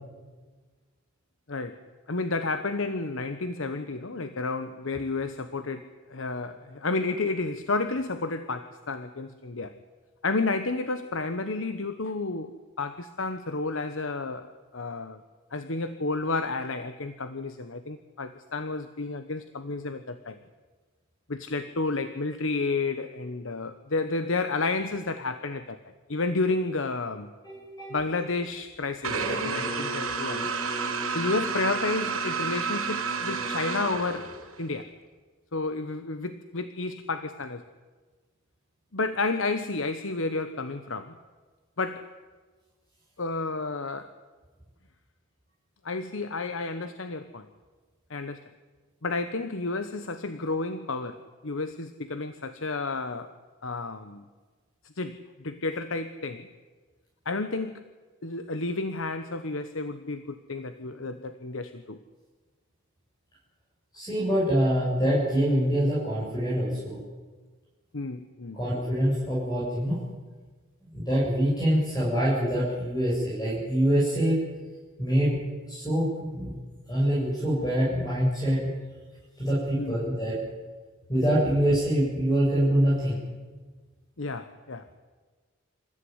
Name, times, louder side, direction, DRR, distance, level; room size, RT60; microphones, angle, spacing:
voice 1, 1.5-9.8 10.2-15.2 15.5-20.4 21.3-25.8 26.1-27.3 27.9-30.5 31.1-34.9 35.5-37.6 38.9-41.2 41.8-42.2 43.2-44.1 45.8-47.5 48.1-48.5 49.0-53.3 53.6-54.3 55.0-56.5 57.2-57.8 58.2-62.0 67.9-68.6 79.8-80.0 84.2-84.9, left 3 dB, 65° left, 10 dB, 1.1 m, -31 dB
voice 2, 27.4-28.0 63.9-67.0 68.5-70.0 70.9-74.4 75.0-75.4 75.7-76.5 76.9-78.7 79.4-80.3 81.1-83.2, equal, 20° left, -7 dB, 7.4 m, -25 dB
sound 1, 29.0-34.6, right 4 dB, 80° right, 6.1 m, -30 dB
27.5 x 15.0 x 9.6 m, 1.4 s
head